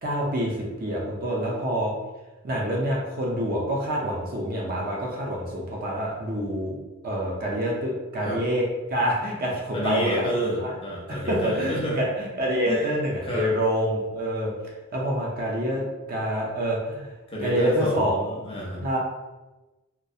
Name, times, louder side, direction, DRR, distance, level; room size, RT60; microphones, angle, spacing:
voice 1, 0.0-1.9 2.4-6.8 7.0-10.2 10.6-10.7 11.1-14.5 14.9-15.8 16.1-17.1 17.4-18.4 18.8-19.0, equal, 40° right, -3 dB, 0.5 m, -26 dB
voice 2, 9.7-12.0 12.7-12.9 13.2-13.5 17.3-18.9, equal, 25° left, -4 dB, 0.5 m, -29 dB
2.3 x 2.1 x 2.6 m, 1.1 s
head